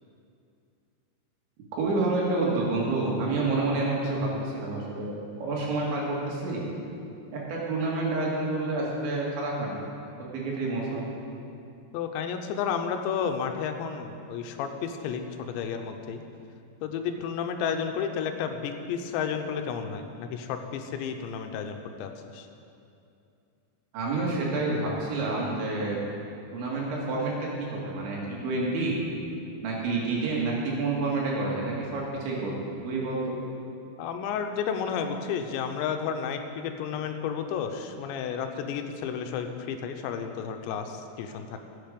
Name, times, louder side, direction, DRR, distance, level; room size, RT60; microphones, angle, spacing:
voice 1, 1.7-6.6 7.3-9.8 10.3-11.0 23.9-26.0 26.5-29.0 29.6-32.6 32.8-33.4, right 2 dB, 85° right, -3 dB, 4.4 m, -28 dB
voice 2, 11.9-16.2 16.8-22.5 34.0-41.6, left 7 dB, 85° left, 6 dB, 3.0 m, -32 dB
15.0 x 8.5 x 5.2 m, 2.6 s
omnidirectional pair, 5.2 m